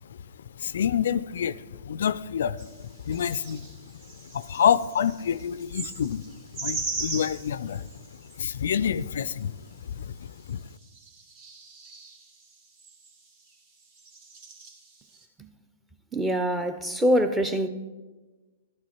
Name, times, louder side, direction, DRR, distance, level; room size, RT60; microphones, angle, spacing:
voice 1, 0.6-2.6 3.0-3.7 4.3-6.2 6.6-7.9 8.4-9.5 9.9-10.6, left 8 dB, 65° left, 0.3 m, -27 dB
sound 1, 2.6-2.8 3.1-8.4 9.4-9.5 10.5-10.6 10.8-13.4 13.8-15.2, right 3 dB, 45° right, 1.8 m, -39 dB
voice 2, 16.1-17.7, equal, 10° right, 0.8 m, -24 dB
12.5 x 9.8 x 4.4 m
hypercardioid pair, 120°, 0 cm